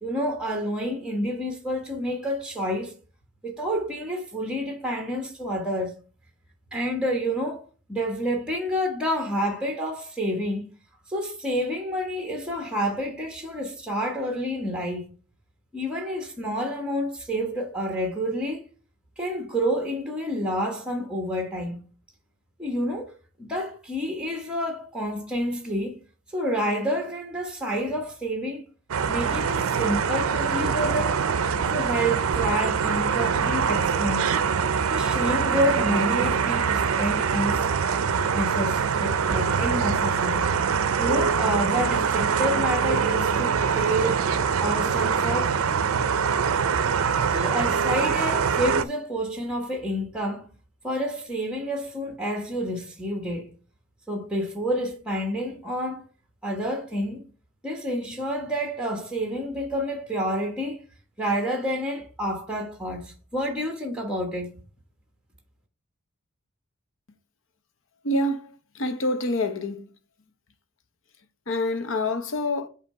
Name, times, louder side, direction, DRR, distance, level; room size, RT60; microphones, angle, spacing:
voice 1, 0.0-2.9 3.4-6.0 6.7-10.7 11.1-15.1 15.7-18.6 19.2-21.8 22.6-23.1 23.4-26.0 26.3-28.6 29.1-31.2 31.7-34.3 34.9-37.7 38.3-40.5 41.0-44.3 44.6-45.6 47.3-50.5 50.8-53.5 54.1-56.0 56.4-57.2 57.6-60.8 61.2-64.5, equal, 5° right, 1.2 m, -29 dB
sound 1, 28.9-48.8, right 6 dB, 75° right, 0.5 m, -24 dB
voice 2, 68.0-69.9 71.5-72.7, left 1 dB, 60° left, 0.8 m, -27 dB
8.1 x 2.8 x 5.4 m
head